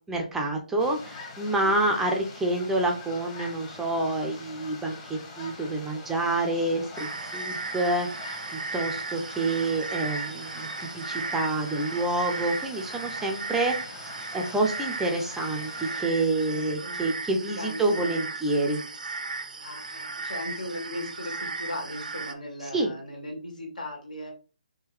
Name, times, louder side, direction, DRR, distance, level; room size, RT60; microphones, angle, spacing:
voice 1, 0.1-14.1 14.3-18.8 22.7-22.9, right 2 dB, 5° right, 2 dB, 0.5 m, -28 dB
sound 1, 0.8-16.0, left 3 dB, 25° left, 1.1 m, -44 dB
sound 2, 7.0-22.3, right 3 dB, 85° right, 0.6 m, -36 dB
voice 2, 16.5-17.0 17.4-18.3 19.6-24.3, left 1 dB, 80° left, 1 dB, 1.8 m, -38 dB
3.6 x 2.8 x 3.1 m, 0.36 s
figure-of-eight pair, 150°, 4 cm